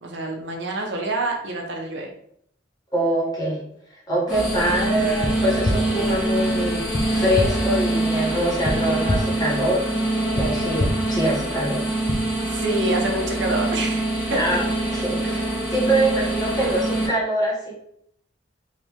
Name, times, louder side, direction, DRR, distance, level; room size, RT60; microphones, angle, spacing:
voice 1, 0.0-2.1 12.5-14.6, right 2 dB, 70° right, 1 dB, 0.9 m, -27 dB
voice 2, 2.9-3.6 4.1-6.8 7.1-9.8 10.3-11.9 14.3-14.6 14.9-17.7, right 1 dB, 20° left, -5 dB, 1.5 m, -24 dB
sound 1, 4.3-17.1, right 1 dB, 5° right, 1.9 m, -25 dB
sound 2, 5.2-5.3 5.6-5.8 6.9-7.0 7.3-7.5 8.6-8.7 9.1-9.2 10.4-10.5 10.8-10.9 12.1-12.2, left 1 dB, 35° left, 0.7 m, -22 dB
4.9 x 2.9 x 3.6 m, 0.70 s
head